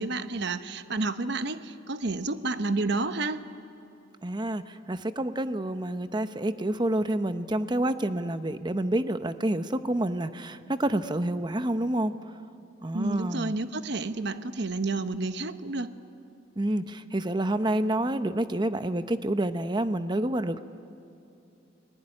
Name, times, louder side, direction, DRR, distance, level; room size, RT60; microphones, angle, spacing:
voice 1, 0.0-3.4 12.9-15.9, right 3 dB, 60° right, 10 dB, 1.0 m, -30 dB
voice 2, 4.2-12.1 12.8-13.5 16.6-20.6, right 1 dB, 25° right, 10 dB, 0.8 m, -28 dB
30.0 x 20.0 x 9.8 m, 2.6 s
head